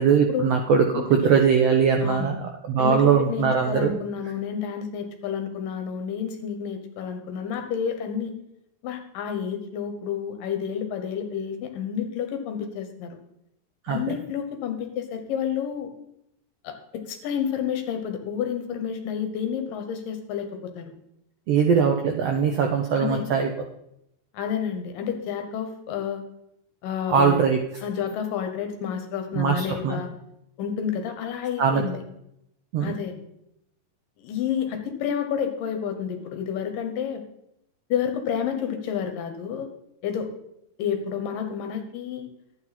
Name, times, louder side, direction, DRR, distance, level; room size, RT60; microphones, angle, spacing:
voice 1, 0.0-3.9 13.8-14.0 21.5-23.5 27.1-27.6 29.3-30.0 31.6-31.8 32.7-32.9, right 6 dB, 80° right, 3 dB, 1.4 m, -21 dB
voice 2, 2.8-8.3 8.8-13.2 13.9-15.9 16.6-20.9 23.0-23.3 24.3-26.2 26.8-27.4 27.8-30.1 30.6-32.0 32.8-33.1 34.2-37.2 37.9-39.7 40.0-40.3 40.8-42.3, left 8 dB, 80° left, 6 dB, 2.9 m, -30 dB
12.0 x 8.9 x 4.2 m, 0.78 s
omnidirectional pair, 3.9 m